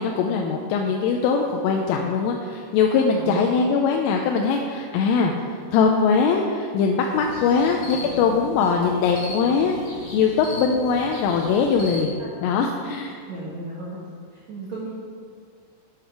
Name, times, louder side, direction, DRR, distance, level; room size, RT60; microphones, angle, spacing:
voice 1, 0.0-5.3 5.7-9.8 10.1-13.2, left 5 dB, 85° left, 2 dB, 3.1 m, -21 dB
voice 2, 3.1-3.4 12.2-12.3 13.3-14.0 14.3-14.9, right 3 dB, 80° right, -6 dB, 1.5 m, -34 dB
sound 1, 7.1-12.0, left 1 dB, 45° left, 1.7 m, -38 dB
9.7 x 8.2 x 5.9 m, 2.2 s
omnidirectional pair, 6.0 m